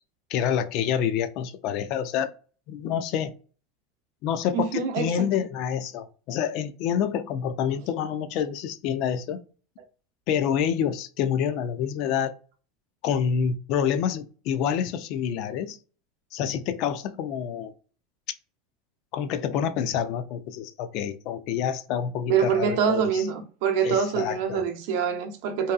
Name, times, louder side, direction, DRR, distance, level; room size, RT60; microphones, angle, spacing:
voice 1, 0.3-2.3 2.7-3.3 4.2-9.4 10.3-12.3 13.0-15.8 16.3-17.7 19.1-23.2 23.8-24.6, left 8 dB, 60° left, 0.3 m, -27 dB
voice 2, 4.5-5.3 22.3-25.7, right 7 dB, 70° right, 0.6 m, -25 dB
2.7 x 2.3 x 2.4 m
hypercardioid pair, 100°, 0 cm